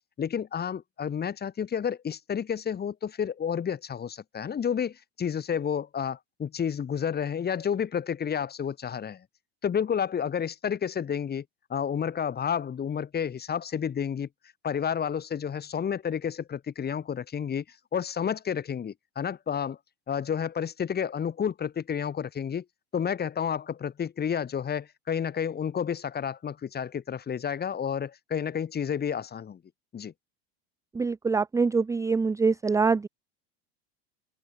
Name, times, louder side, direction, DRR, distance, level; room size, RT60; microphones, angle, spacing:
voice 1, 0.2-9.2 9.6-11.4 11.7-14.3 14.6-17.6 17.9-19.8 20.1-22.6 22.9-29.6 29.9-30.1, left 8 dB, 30° left, 6.1 m, -30 dB
voice 2, 31.0-33.1, right 4 dB, 10° right, 0.5 m, -24 dB
open air
supercardioid pair, 100°, 32 cm